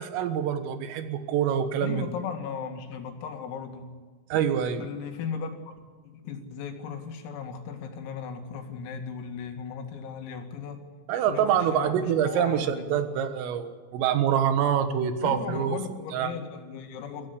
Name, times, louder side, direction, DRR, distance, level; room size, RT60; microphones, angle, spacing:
voice 1, 0.0-2.1 4.3-4.8 11.1-15.8 16.1-16.3, right 9 dB, 80° right, 9 dB, 4.0 m, -26 dB
voice 2, 1.8-3.9 4.8-5.8 6.0-10.8 11.3-12.9 15.2-17.3, left 6 dB, 90° left, 4 dB, 4.8 m, -37 dB
22.5 x 15.5 x 8.3 m, 1.5 s
omnidirectional pair, 5.9 m